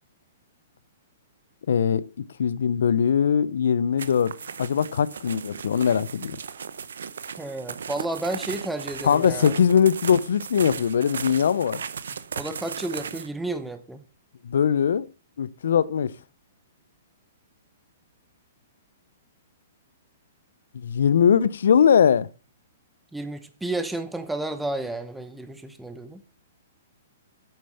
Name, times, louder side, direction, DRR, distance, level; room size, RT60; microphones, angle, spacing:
voice 1, 1.7-6.4 9.0-11.8 14.4-15.1 15.4-16.1 20.7-22.3, left 7 dB, 80° left, 0.5 m, -21 dB
sound 1, 4.0-13.3, right 6 dB, 85° right, 0.7 m, -36 dB
voice 2, 7.4-9.5 12.1-14.0 23.1-26.2, right 2 dB, 5° right, 0.9 m, -32 dB
8.8 x 6.7 x 5.6 m
hypercardioid pair, 145°, 0 cm